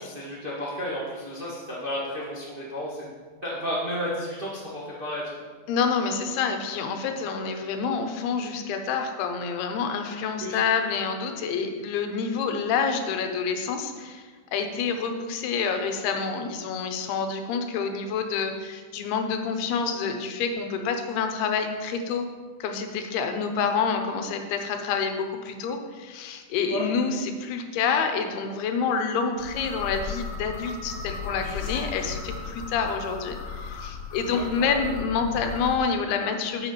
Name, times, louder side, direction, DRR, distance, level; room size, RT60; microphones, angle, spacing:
voice 1, 0.0-3.0 3.4-5.4 10.4-10.6 26.7-26.8 34.3-34.8, equal, 70° right, -7 dB, 0.5 m, -32 dB
voice 2, 5.7-22.3 22.6-36.7, left 5 dB, 90° left, 6 dB, 2.9 m, -28 dB
sound 1, 29.4-35.8, left 5 dB, 70° left, 3.0 m, -36 dB
7.1 x 6.9 x 5.7 m, 1.5 s
omnidirectional pair, 4.4 m